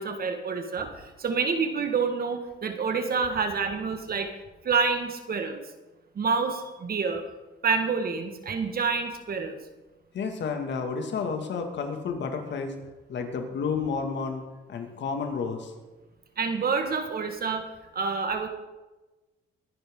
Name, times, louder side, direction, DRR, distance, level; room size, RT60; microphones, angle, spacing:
voice 1, 0.0-4.3 4.6-5.6 6.2-7.3 7.6-9.6 16.4-17.7 17.9-18.5, right 5 dB, 50° right, 6 dB, 1.8 m, -28 dB
voice 2, 10.1-12.7 13.1-14.4 14.7-15.7, left 5 dB, 65° left, 4 dB, 2.2 m, -31 dB
22.5 x 10.0 x 3.9 m, 1.1 s
cardioid pair, 90°, 20 cm